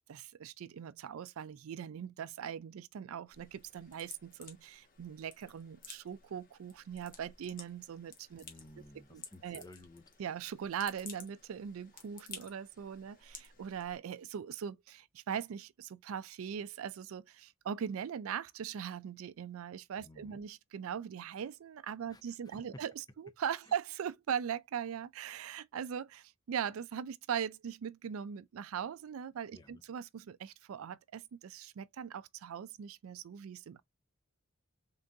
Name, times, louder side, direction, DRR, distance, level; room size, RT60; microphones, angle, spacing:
voice 1, 0.1-8.4 9.1-9.6 10.2-22.9 23.4-33.8, right 8 dB, 80° right, 0.4 m, -40 dB
sound 1, 3.3-14.0, left 5 dB, 40° left, 1.2 m, -54 dB
voice 2, 8.4-10.1 20.0-20.4 22.1-22.8 23.6-23.7 29.5-29.8, left 1 dB, 20° left, 0.6 m, -55 dB
3.7 x 3.6 x 2.6 m
head